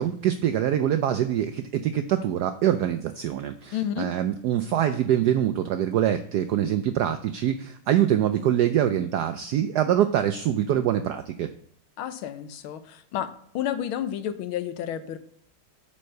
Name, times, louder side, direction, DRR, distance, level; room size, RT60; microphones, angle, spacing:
voice 1, 0.0-11.5, right 10 dB, 80° right, 9 dB, 0.9 m, -24 dB
voice 2, 3.7-4.1 12.0-15.2, left 10 dB, 80° left, 10 dB, 1.6 m, -31 dB
8.6 x 4.4 x 6.5 m, 0.65 s
omnidirectional pair, 2.2 m